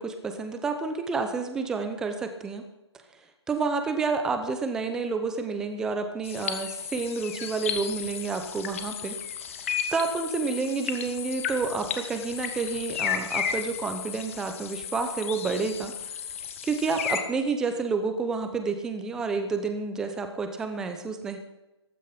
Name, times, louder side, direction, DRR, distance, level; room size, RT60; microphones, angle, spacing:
voice 1, 0.0-2.6 3.5-9.2 9.6-15.9 16.6-21.4, right 4 dB, 5° right, 7 dB, 0.8 m, -29 dB
sound 1, 6.2-17.2, left 8 dB, 30° left, 1.5 m, -34 dB
15.0 x 14.0 x 5.9 m, 1.0 s
hypercardioid pair, 165°, 15 cm